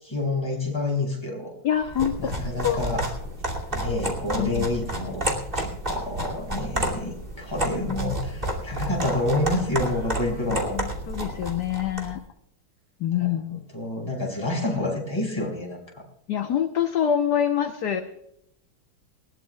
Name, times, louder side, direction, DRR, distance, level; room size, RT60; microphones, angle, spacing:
voice 1, 0.0-1.5 2.2-3.1 3.7-10.8 13.1-16.0, left 2 dB, 10° left, -1 dB, 5.8 m, -29 dB
voice 2, 1.6-2.8 4.4-4.7 10.7-12.2 13.0-13.6 16.3-18.0, left 9 dB, 60° left, 6 dB, 1.4 m, -25 dB
sound 1, 1.8-12.2, right 1 dB, 25° right, 2.7 m, -30 dB
20.0 x 19.0 x 2.3 m, 0.74 s
omnidirectional pair, 2.2 m